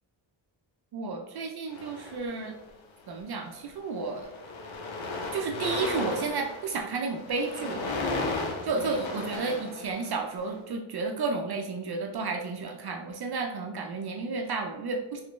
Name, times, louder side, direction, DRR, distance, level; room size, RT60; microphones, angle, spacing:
voice 1, 0.9-2.6 3.1-4.3 5.3-8.0 8.6-15.2, right 4 dB, 55° right, 2 dB, 0.5 m, -32 dB
sound 1, 1.7-2.7 3.5-3.7 3.9-10.4, left 2 dB, 75° left, 0.8 m, -35 dB
3.2 x 3.1 x 3.0 m, 1.0 s
cardioid pair, 85°, 48 cm